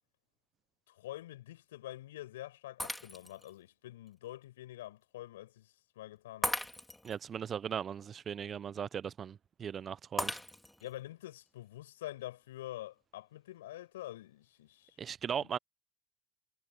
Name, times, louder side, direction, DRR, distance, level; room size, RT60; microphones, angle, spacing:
voice 1, 0.9-6.6 10.8-15.0 15.4-15.5, left 14 dB, 80° left, 5.9 m, -46 dB
Shatter, 2.8-3.5 4.1-4.2 6.4-7.2 10.2-10.9, left 1 dB, 5° left, 3.6 m, -37 dB
voice 2, 7.0-10.4 15.0-15.6, right 8 dB, 35° right, 1.0 m, -38 dB
hypercardioid pair, 85°, 0 cm